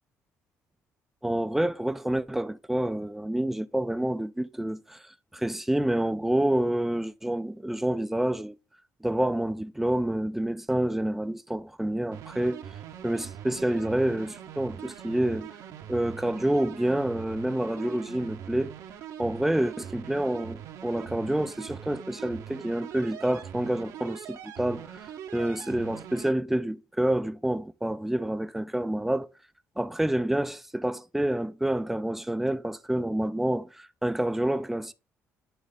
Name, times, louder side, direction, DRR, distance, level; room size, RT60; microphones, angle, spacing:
voice 1, 1.2-8.6 9.0-12.7 13.0-15.6 15.9-18.7 19.2-29.3 29.8-34.9, right 1 dB, 5° right, 0.5 m, -28 dB
sound 1, 12.1-26.3, right 9 dB, 80° right, 1.2 m, -42 dB
9.5 x 3.2 x 4.0 m
cardioid pair, 110°, 6 cm